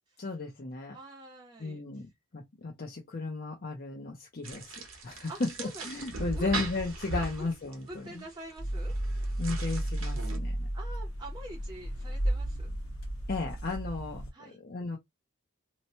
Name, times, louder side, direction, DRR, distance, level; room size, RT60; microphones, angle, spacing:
voice 1, 0.2-1.0 1.6-4.8 5.0-8.3 9.4-10.7 13.3-14.2 14.5-15.0, left 3 dB, 45° left, 0.6 m, -35 dB
voice 2, 0.9-2.0 5.3-5.9 6.3-6.7 7.4-7.5 7.9-8.9 10.7-12.7 14.3-14.6, right 1 dB, 20° right, 0.6 m, -46 dB
sound 1, 4.4-10.4, right 2 dB, 65° right, 0.9 m, -39 dB
sound 2, 8.6-14.3, right 1 dB, 75° left, 1.1 m, -33 dB
2.8 x 2.1 x 2.8 m
head